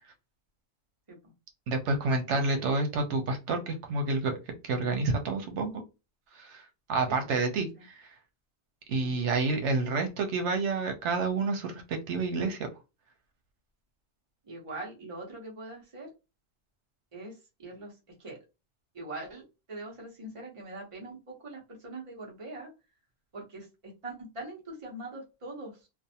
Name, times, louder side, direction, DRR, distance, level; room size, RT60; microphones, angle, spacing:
voice 1, 1.7-4.4 4.6-5.8 6.3-8.1 8.9-12.7, right 3 dB, 85° right, 5 dB, 1.0 m, -29 dB
voice 2, 9.0-9.3 14.4-16.1 17.1-18.4 18.9-22.7 23.3-25.9, right 2 dB, 30° right, -2 dB, 0.9 m, -43 dB
2.5 x 2.1 x 2.7 m, 0.27 s
omnidirectional pair, 1.1 m